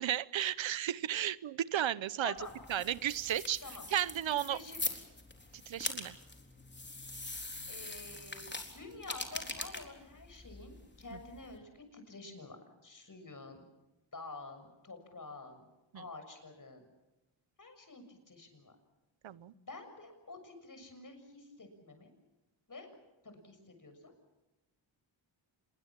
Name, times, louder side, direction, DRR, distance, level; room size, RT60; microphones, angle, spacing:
voice 1, 0.0-2.3 2.7-3.6 3.9-4.6 5.7-6.2 11.1-11.2 15.9-16.0 19.2-19.5, right 11 dB, 75° right, 19 dB, 0.8 m, -34 dB
sound 1, 2.4-11.6, left 2 dB, 20° left, 3.9 m, -43 dB
voice 2, 4.3-4.8 7.7-8.5 8.7-12.6 12.8-13.6 14.1-15.6 15.9-16.8 17.6-18.8 19.5-22.1 22.7-22.9 23.2-24.1, left 3 dB, 40° left, 7 dB, 6.9 m, -49 dB
26.5 x 22.0 x 7.4 m, 1.0 s
cardioid pair, 70°, 47 cm